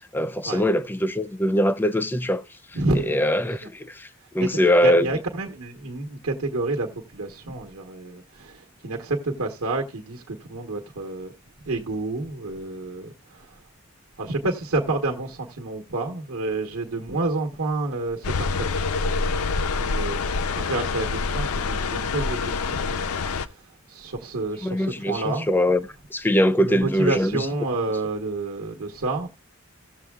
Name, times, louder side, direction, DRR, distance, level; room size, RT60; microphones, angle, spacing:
voice 1, 0.1-2.4 3.1-4.1 4.3-5.1 24.6-25.8 26.1-27.4, equal, 10° left, 0.4 m, -22 dB
voice 2, 2.7-3.7 4.4-11.3 11.6-13.6 14.2-19.4 19.8-20.2 20.5-25.5 26.6-29.3, right 2 dB, 85° right, 1.2 m, -29 dB
sound 1, 18.2-23.5, left 4 dB, 85° left, 0.5 m, -26 dB
17.0 x 7.2 x 2.3 m
head